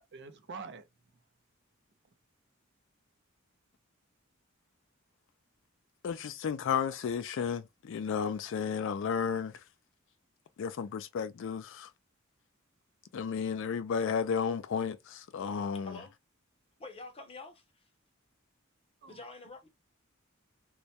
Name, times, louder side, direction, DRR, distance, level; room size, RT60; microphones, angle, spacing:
voice 1, 0.1-0.9 6.7-6.8 19.0-19.2, right 4 dB, 55° right, 0.5 m, -44 dB
voice 2, 6.0-9.6 10.6-11.9 13.1-16.0, left 6 dB, 60° left, 0.3 m, -33 dB
voice 3, 16.8-17.8 19.1-19.7, left 3 dB, 30° left, 0.6 m, -47 dB
2.2 x 2.1 x 2.7 m
head